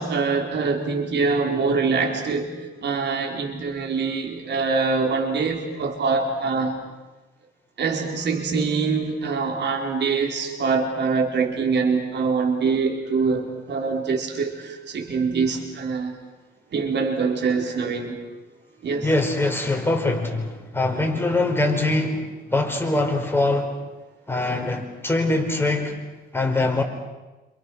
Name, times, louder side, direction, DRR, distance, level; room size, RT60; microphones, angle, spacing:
voice 1, 0.0-2.5 2.8-6.8 7.8-16.1 16.7-18.2 18.8-19.1, right 4 dB, 60° right, 3 dB, 4.7 m, -24 dB
voice 2, 19.0-23.7 24.3-25.9 26.3-26.8, left 2 dB, 10° left, 3 dB, 4.8 m, -23 dB
28.5 x 27.5 x 6.5 m, 1.1 s
cardioid pair, 90°, 20 cm